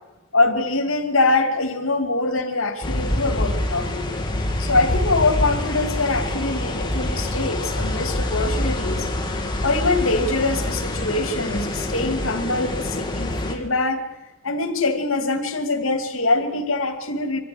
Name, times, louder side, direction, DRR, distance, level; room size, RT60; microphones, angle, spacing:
voice 1, 0.3-4.0 4.6-9.1 9.6-14.1 14.4-17.4, left 3 dB, 75° left, 7 dB, 2.3 m, -23 dB
sound 1, 2.8-13.6, left 1 dB, 20° left, 2.6 m, -26 dB
24.0 x 15.0 x 7.7 m, 1.0 s
head